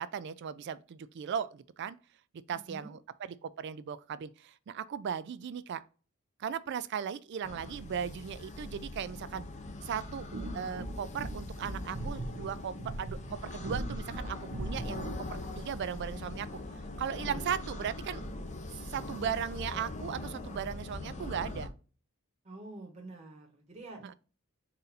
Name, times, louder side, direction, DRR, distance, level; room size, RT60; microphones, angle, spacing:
voice 1, 0.0-2.0 2.5-3.0 3.4-5.8 6.4-9.5 9.8-16.5 17.0-18.2 18.8-21.7 24.0-24.1, right 8 dB, 50° right, 0.3 m, -37 dB
sound 1, 7.4-21.7, left 2 dB, 35° left, 0.5 m, -42 dB
sound 2, 9.9-15.3, right 1 dB, 85° right, 0.6 m, -40 dB
voice 2, 22.4-24.1, right 2 dB, 30° right, 0.9 m, -47 dB
4.1 x 2.6 x 4.0 m
head